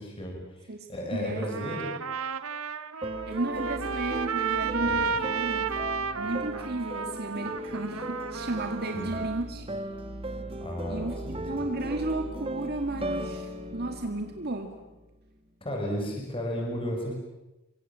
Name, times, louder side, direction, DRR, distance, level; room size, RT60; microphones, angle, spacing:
voice 1, 0.0-1.9 4.8-5.2 8.9-9.1 10.6-11.6 15.6-17.1, equal, 25° left, 0 dB, 6.5 m, -34 dB
voice 2, 0.7-1.5 3.3-5.6 6.1-9.7 10.9-14.7, right 2 dB, 50° right, 5 dB, 2.1 m, -34 dB
Trumpet, 1.4-9.4, right 5 dB, 85° right, 1.4 m, -33 dB
sound 1, 3.0-15.1, right 1 dB, 25° right, 1.8 m, -37 dB
30.0 x 24.0 x 7.5 m, 1.0 s
head